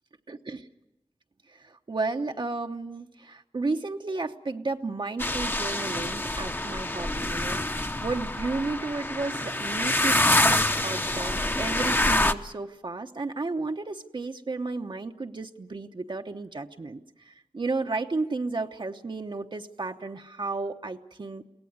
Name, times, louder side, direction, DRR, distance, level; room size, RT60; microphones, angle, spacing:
voice 1, 0.3-0.7 1.5-21.4, right 3 dB, 55° right, 5 dB, 0.9 m, -33 dB
sound 1, 5.2-12.3, left 1 dB, 20° left, 0.9 m, -26 dB
23.0 x 17.5 x 9.5 m, 0.96 s
wide cardioid pair, 80°, 10 cm